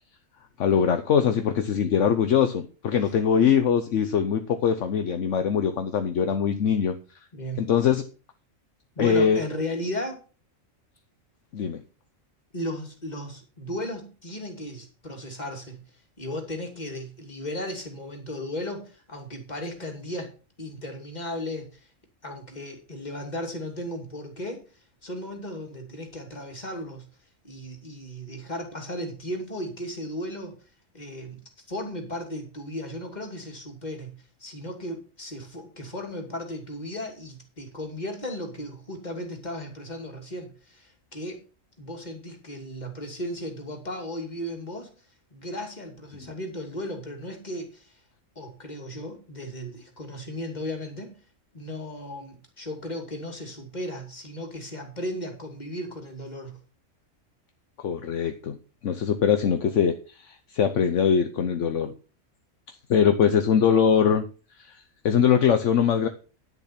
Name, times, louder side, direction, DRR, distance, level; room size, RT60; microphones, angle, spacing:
voice 1, 0.6-7.0 7.6-8.0 9.0-9.4 11.5-11.8 57.8-58.6 58.8-61.9 62.9-64.3 64.6-64.8 65.0-66.1, left 7 dB, 65° left, 8 dB, 1.2 m, -22 dB
voice 2, 7.3-7.6 9.0-10.2 12.5-15.8 16.2-20.3 20.6-21.9 22.2-27.1 27.4-30.6 30.9-34.1 34.4-41.4 41.8-44.9 45.3-48.0 48.4-51.2 51.5-56.6, left 1 dB, 30° left, 3 dB, 2.8 m, -35 dB
11.0 x 6.9 x 5.9 m, 0.35 s
omnidirectional pair, 1.4 m